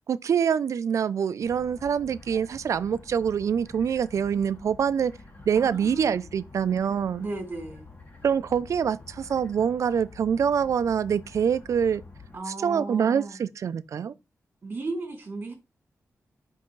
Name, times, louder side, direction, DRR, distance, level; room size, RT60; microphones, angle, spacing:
voice 1, 0.1-5.1 5.5-7.3 8.2-12.0 12.5-14.1, right 7 dB, 65° right, 0.4 m, -25 dB
sound 1, 1.4-12.4, left 3 dB, 30° left, 2.2 m, -48 dB
voice 2, 5.6-6.1 7.2-7.9 12.3-13.4 14.6-15.5, right 2 dB, 35° right, 2.7 m, -35 dB
5.7 x 5.4 x 3.2 m
wide cardioid pair, 115°, 6 cm